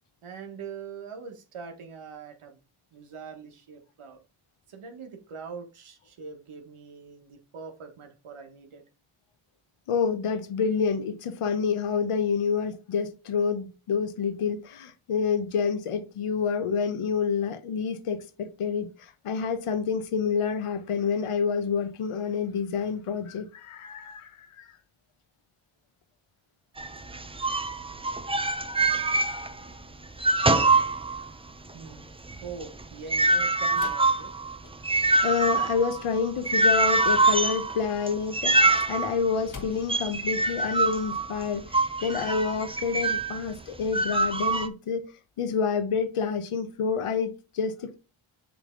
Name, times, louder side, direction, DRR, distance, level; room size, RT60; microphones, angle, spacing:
voice 1, 0.2-2.6 2.9-4.2 4.7-8.8 31.7-32.1 32.4-34.3, right 5 dB, 80° right, 1.5 m, -43 dB
voice 2, 9.9-24.7 35.2-45.1 45.4-48.0, left 6 dB, 85° left, 1.0 m, -28 dB
sound 1, 26.8-29.8 30.0-31.5 31.9-43.4 43.9-44.7, right 2 dB, 10° right, 0.5 m, -25 dB
sound 2, 33.7-35.1 38.4-40.1, left 5 dB, 40° left, 1.1 m, -46 dB
7.1 x 3.5 x 3.8 m
cardioid pair, 75°, 50 cm